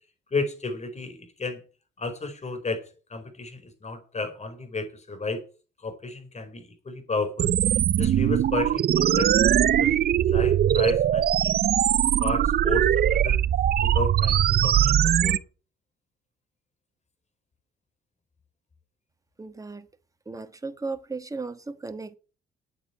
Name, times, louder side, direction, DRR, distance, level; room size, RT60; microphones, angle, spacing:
voice 1, 0.3-1.6 2.0-5.4 5.8-7.5 8.0-9.5 9.8-11.5 12.2-13.4 13.8-15.4, left 3 dB, 35° left, 4.7 m, -33 dB
sound 1, 7.4-15.4, right 10 dB, 50° right, 0.6 m, -21 dB
voice 2, 19.4-19.9 20.2-22.2, right 3 dB, 15° right, 1.4 m, -35 dB
9.0 x 8.1 x 8.6 m
cardioid pair, 90°, 20 cm